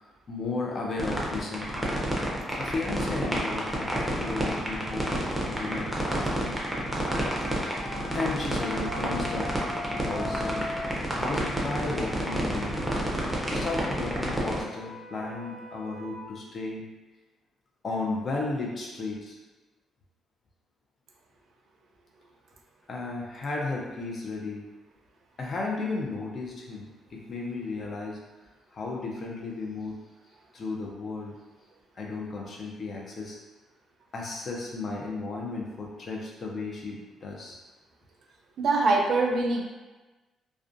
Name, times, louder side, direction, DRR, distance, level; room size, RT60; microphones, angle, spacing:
voice 1, 0.3-1.9 2.6-6.6 7.7-9.5 9.9-10.7 11.2-12.9 13.5-16.8 17.8-19.4 22.9-24.6 25.4-28.2 28.7-30.0 30.5-31.3 32.0-33.4 34.1-37.6, left 3 dB, 45° left, -2 dB, 0.5 m, -34 dB
sound 1, 1.0-14.6, right 1 dB, 5° right, 0.6 m, -29 dB
sound 2, 7.0-11.0 11.7-16.3, left 2 dB, 20° left, 0.8 m, -41 dB
voice 2, 38.6-39.6, right 3 dB, 70° right, 0 dB, 0.4 m, -23 dB
2.4 x 2.2 x 2.5 m, 1.2 s
cardioid pair, 90°, 0 cm